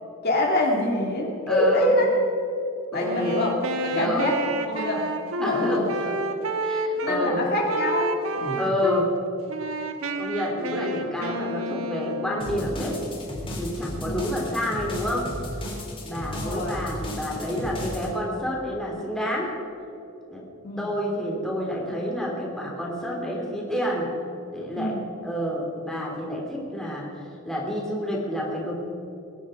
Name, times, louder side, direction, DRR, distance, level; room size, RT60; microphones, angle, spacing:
voice 1, 0.2-2.1 2.9-3.5 3.8-5.1 5.4-6.1 7.0-8.6 14.0-14.3 16.2-16.8 20.6-20.9 24.7-25.1, left 1 dB, 50° left, -1 dB, 2.4 m, -25 dB
voice 2, 1.5-2.0 2.9-3.3 3.9-4.3 5.4-5.8 6.6-7.4 8.6-9.1 10.2-13.0 13.6-15.3 16.0-19.5 20.3-20.4 20.8-24.1 24.5-25.0 25.2-27.1 27.4-28.7, equal, ahead, -3 dB, 3.2 m, -29 dB
Wind instrument woodwind instrument, 3.0-7.2 7.7-9.1 9.5-12.7, right 1 dB, 85° right, 1.3 m, -30 dB
sound 1, 12.4-18.1, left 1 dB, 25° left, 3.6 m, -34 dB
21.5 x 11.0 x 5.0 m, 2.7 s
head